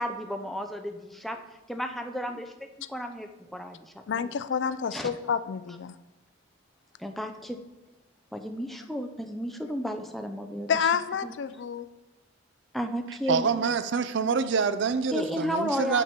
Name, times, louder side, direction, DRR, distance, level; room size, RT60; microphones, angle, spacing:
voice 1, 0.0-1.4 1.7-4.3 4.9-5.1 7.0-7.6 8.3-10.7 11.2-11.3 12.7-13.5 15.1-16.0, equal, ahead, 0.5 m, -33 dB
voice 2, 4.1-6.0 10.7-11.9, left 7 dB, 70° left, 0.4 m, -29 dB
voice 3, 13.3-16.0, right 5 dB, 70° right, 0.4 m, -26 dB
7.0 x 6.0 x 4.4 m
head